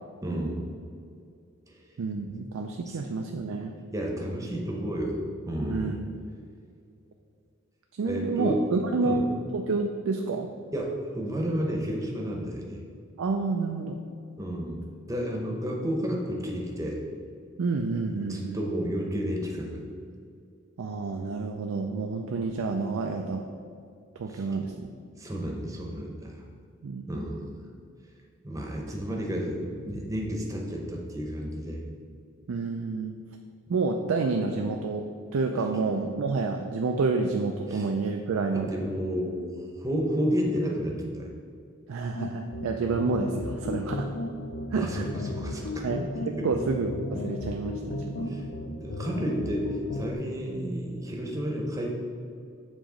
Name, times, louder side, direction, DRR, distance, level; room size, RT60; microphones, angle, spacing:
voice 1, 0.2-0.6 2.9-3.0 3.9-5.2 5.5-6.0 8.1-8.6 9.0-9.2 10.7-12.8 14.4-14.8 15.1-17.0 18.2-19.8 24.3-24.4 25.2-26.3 27.1-27.6 28.4-31.8 37.7-37.8 38.5-39.4 39.8-41.3 44.7-45.9 46.3-46.5 48.3-51.9, equal, 15° right, -1 dB, 0.7 m, -31 dB
voice 2, 2.0-3.7 5.7-6.1 8.0-9.2 9.5-10.5 13.2-14.0 17.6-18.6 20.8-23.4 24.2-24.9 26.8-27.0 32.5-33.2 33.7-35.1 35.3-38.9 41.9-44.1 44.7-45.1 45.8-48.5, right 4 dB, 85° right, 4 dB, 0.4 m, -29 dB
sound 1, 42.2-50.2, left 2 dB, 65° left, 0.5 m, -35 dB
7.6 x 3.0 x 4.9 m, 2.3 s
head